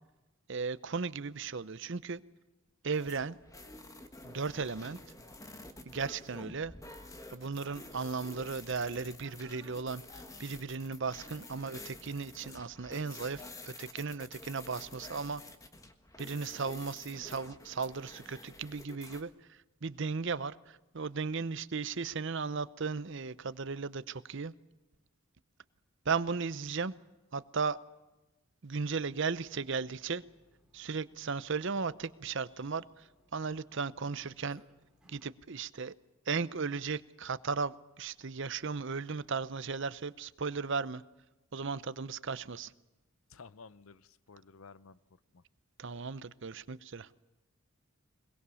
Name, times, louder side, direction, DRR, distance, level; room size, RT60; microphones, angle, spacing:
voice 1, 0.5-2.2 2.8-3.4 4.2-5.0 5.9-6.7 7.3-15.4 16.2-19.3 19.8-24.5 26.1-26.9 27.3-27.8 28.6-30.2 30.7-33.0 33.3-34.6 35.1-35.9 36.3-41.0 41.5-42.7 45.8-47.1, right 4 dB, 55° right, 0.7 m, -36 dB
sound 1, 2.9-19.2, left 2 dB, 15° left, 1.4 m, -50 dB
Burping eructation, 28.9-35.3, equal, 5° right, 2.5 m, -68 dB
voice 2, 43.3-45.0 45.3-45.4, left 4 dB, 70° left, 0.6 m, -53 dB
22.0 x 22.0 x 7.0 m
head